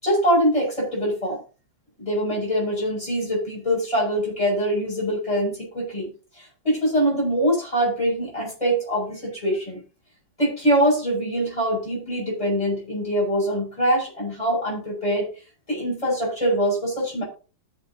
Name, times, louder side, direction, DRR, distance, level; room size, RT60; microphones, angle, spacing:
voice 1, 0.0-1.4 2.0-9.8 10.4-15.3 15.7-17.2, equal, 15° left, -4 dB, 7.2 m, -23 dB
20.0 x 6.9 x 2.9 m, 0.34 s
omnidirectional pair, 2.0 m